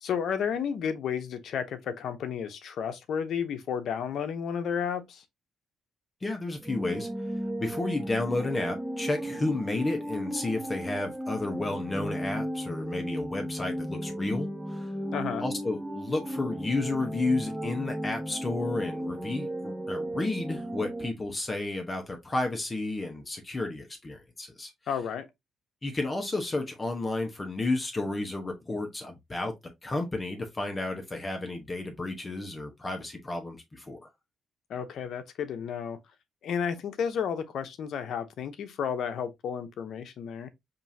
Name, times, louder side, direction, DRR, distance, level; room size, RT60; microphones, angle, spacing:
voice 1, 0.0-5.2 15.1-15.4 24.9-25.3 34.7-36.0 36.4-40.5, left 7 dB, 70° left, 0.8 m, -32 dB
voice 2, 6.2-7.1 7.6-14.9 15.4-24.7 25.8-29.5 29.8-34.1, left 2 dB, 25° left, 1.0 m, -32 dB
sound 1, 6.6-21.1, equal, 15° right, 0.8 m, -35 dB
5.4 x 2.7 x 2.7 m
cardioid pair, 90°, 0 cm